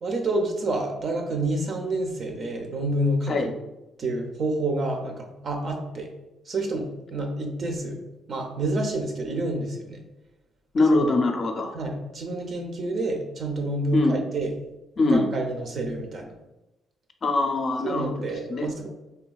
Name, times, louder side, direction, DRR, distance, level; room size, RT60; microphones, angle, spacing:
voice 1, 0.0-3.5 4.0-6.1 6.5-8.0 8.3-10.0 10.9-11.1 11.7-14.5 15.1-16.3 17.8-18.9, right 2 dB, 50° right, 3 dB, 0.5 m, -28 dB
voice 2, 10.7-11.7 13.9-14.2 15.0-15.3 17.2-18.7, left 2 dB, 45° left, 4 dB, 0.4 m, -23 dB
3.3 x 2.2 x 2.3 m, 0.96 s
cardioid pair, 90°, 0 cm